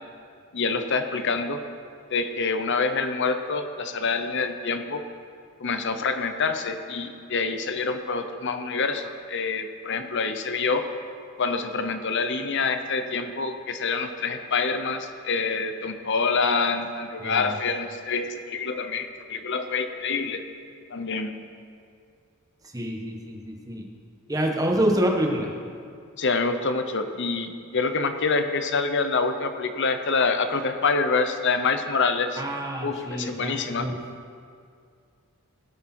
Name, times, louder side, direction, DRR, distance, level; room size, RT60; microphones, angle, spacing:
voice 1, 0.5-1.6 2.1-5.1 5.6-10.9 11.4-20.4 20.9-21.3 26.2-32.4 32.8-33.9, left 4 dB, 55° left, 8 dB, 0.8 m, -26 dB
voice 2, 17.2-17.5 22.7-23.9 24.3-25.5 32.4-34.0, right 1 dB, 15° right, 1 dB, 1.2 m, -27 dB
18.0 x 8.2 x 4.4 m, 2.3 s
head